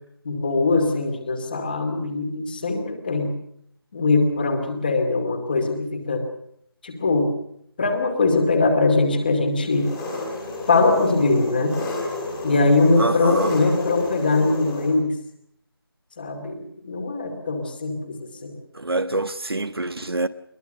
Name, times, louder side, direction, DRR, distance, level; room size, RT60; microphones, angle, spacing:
voice 1, 0.2-3.3 3.9-6.2 6.8-7.3 7.8-9.9 10.7-11.8 12.4-15.1 16.2-18.6, left 3 dB, 25° left, 2.4 m, -21 dB
Engine, 9.6-14.9, left 2 dB, 5° left, 2.4 m, -31 dB
voice 2, 13.0-13.6 18.7-20.3, right 2 dB, 75° right, 1.3 m, -25 dB
22.0 x 20.5 x 6.6 m
figure-of-eight pair, 170°, 13 cm